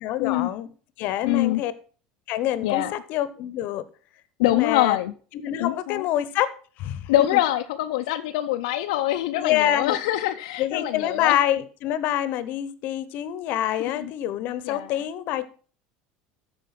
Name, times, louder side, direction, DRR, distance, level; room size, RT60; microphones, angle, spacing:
voice 1, 0.0-0.7 1.0-1.7 2.3-2.8 3.1-3.8 4.4-5.0 5.3-6.5 6.8-7.4 9.4-10.0 10.6-15.5, left 12 dB, 60° left, 15 dB, 0.9 m, -26 dB
voice 2, 1.2-1.6 2.6-2.9 4.4-5.1 5.6-6.0 7.1-11.4 13.8-14.1 14.6-14.9, left 14 dB, 85° left, 5 dB, 0.6 m, -24 dB
13.0 x 4.8 x 5.9 m, 0.41 s
supercardioid pair, 105°, 4 cm